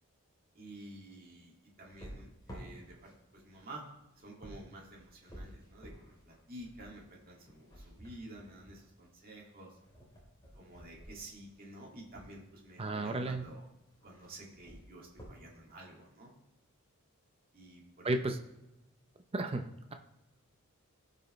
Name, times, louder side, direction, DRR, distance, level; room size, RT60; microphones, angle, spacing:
voice 1, 0.6-9.8 10.5-13.7 14.0-16.3 17.5-18.1, right 1 dB, 40° right, -2 dB, 2.1 m, -51 dB
sound 1, 1.8-12.3 13.2-13.6 13.9-15.4, equal, 20° left, 3.1 m, -53 dB
voice 2, 12.8-13.4 18.0-18.4 19.3-19.9, right 2 dB, 25° right, 6 dB, 0.6 m, -33 dB
15.5 x 5.4 x 3.1 m, 0.92 s
head